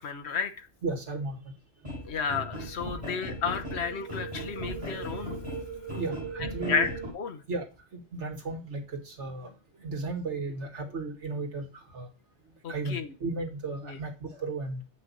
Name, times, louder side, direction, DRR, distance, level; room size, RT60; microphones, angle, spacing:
voice 1, 0.0-0.7 2.1-5.4 6.6-7.4 12.6-13.1 13.8-14.0, left 6 dB, 70° left, 6 dB, 1.3 m, -32 dB
voice 2, 0.8-1.5 5.9-6.9 7.5-7.7 7.9-9.5 9.8-12.1 12.7-14.8, right 3 dB, 90° right, 2 dB, 2.2 m, -35 dB
sound 1, 1.8-7.1, right 1 dB, 25° right, 3.5 m, -37 dB
7.8 x 5.6 x 4.1 m, 0.29 s
omnidirectional pair, 1.2 m